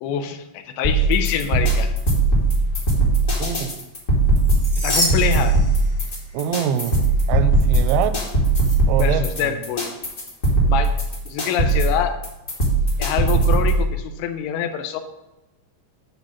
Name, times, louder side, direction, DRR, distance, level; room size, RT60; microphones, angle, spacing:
voice 1, 0.0-1.9 4.8-5.6 9.0-9.9 10.7-11.0 11.3-12.2 13.0-15.0, left 9 dB, 85° left, 8 dB, 2.9 m, -25 dB
sound 1, 0.8-13.8, right 2 dB, 35° left, 1.6 m, -19 dB
voice 2, 3.4-3.7 6.3-7.0 7.3-8.2 8.9-9.6, right 9 dB, 90° right, 12 dB, 2.9 m, -24 dB
sound 2, 4.3-6.3 6.7-6.9 8.5-8.8, equal, 10° left, 0.9 m, -28 dB
9.8 x 3.5 x 7.0 m, 1.0 s
omnidirectional pair, 5.3 m